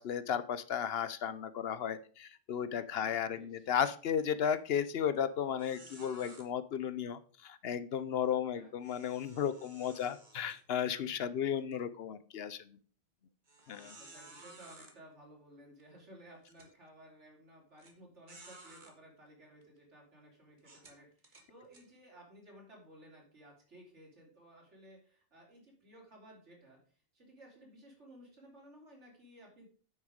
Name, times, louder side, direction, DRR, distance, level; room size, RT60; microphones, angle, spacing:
voice 1, 0.0-12.6 13.7-13.9, left 8 dB, 65° left, 13 dB, 0.8 m, -34 dB
voice 2, 3.0-3.7 8.3-8.7 11.3-11.9 13.6-29.7, right 1 dB, 85° right, -1 dB, 3.6 m, -57 dB
sound 1, 4.5-4.8 5.1-5.2 5.6-6.4 8.8-11.1 11.6-11.8 12.4-12.5 13.5-14.9 15.8-15.9 16.4-16.7 17.8-17.9 18.3-18.9 19.6-19.8 20.6-21.9, right 2 dB, 45° right, 1.7 m, -55 dB
9.1 x 6.4 x 5.1 m, 0.43 s
omnidirectional pair, 1.2 m